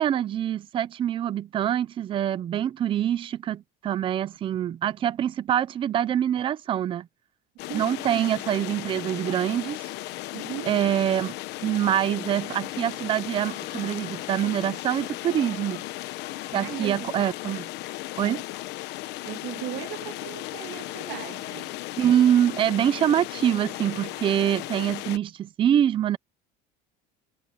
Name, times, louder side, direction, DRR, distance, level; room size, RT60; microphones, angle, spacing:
voice 1, 0.0-7.1 7.7-9.9 10.7-11.3 11.6-15.8 16.5-17.7 18.2-18.4 22.0-26.2, right 10 dB, 25° right, 0.5 m, -25 dB
sound 1, 7.6-25.2, left 18 dB, 60° left, 1.0 m, -36 dB
voice 2, 7.7-8.3 10.3-10.8 16.5-17.1 19.2-21.8, right 16 dB, 65° right, 1.9 m, -37 dB
sound 2, 13.4-20.3, left 10 dB, 40° left, 1.6 m, -50 dB
cardioid pair, 170°, 20 cm